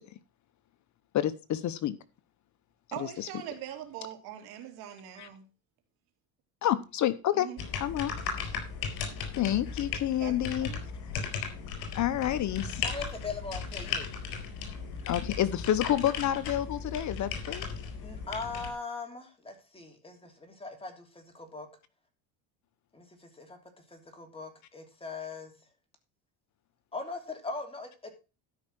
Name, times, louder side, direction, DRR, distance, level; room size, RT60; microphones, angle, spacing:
voice 1, 1.1-2.0 3.2-3.3 5.2-5.3 6.6-7.5 7.8-8.1 9.3-10.7 11.9-12.8 15.1-17.7, left 12 dB, 50° left, 14 dB, 0.9 m, -29 dB
voice 2, 2.9-5.4 7.3-7.6 10.2-10.8, right 11 dB, 75° right, 5 dB, 3.3 m, -42 dB
sound 1, 7.6-18.7, left 6 dB, 75° left, 4.3 m, -36 dB
voice 3, 12.8-14.1 18.0-21.7 22.9-23.6 23.9-25.5 26.9-28.1, left 3 dB, 15° left, 4 dB, 3.0 m, -40 dB
12.5 x 5.6 x 6.1 m, 0.32 s
cardioid pair, 120°, 38 cm